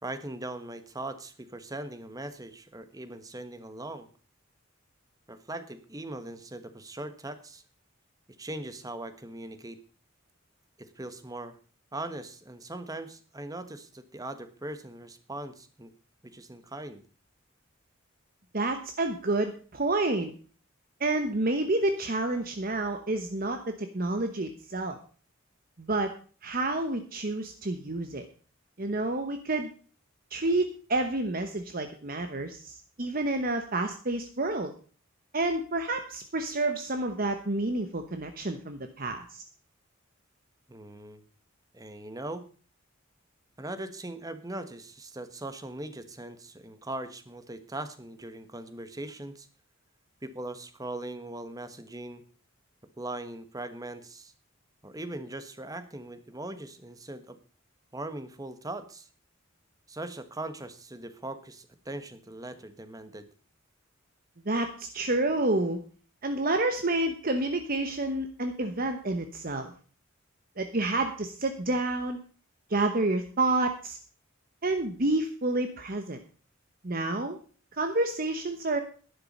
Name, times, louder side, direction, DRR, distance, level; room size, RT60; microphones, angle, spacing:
voice 1, 0.0-4.1 5.3-7.6 8.4-9.8 10.8-11.5 11.9-15.9 16.2-17.0 40.7-41.2 41.7-42.5 43.6-49.5 50.2-52.2 53.0-54.3 54.8-57.4 57.9-59.1 59.9-63.3, right 2 dB, 15° right, 11 dB, 1.2 m, -40 dB
voice 2, 18.5-20.3 21.0-25.0 25.8-26.1 26.4-28.3 28.8-29.7 30.3-34.7 35.3-39.4 64.4-65.8 66.2-69.7 70.6-72.2 72.7-74.0 74.6-76.2 76.8-77.4 77.7-78.8, right 2 dB, 45° right, 7 dB, 1.1 m, -29 dB
11.5 x 10.5 x 5.3 m, 0.40 s
head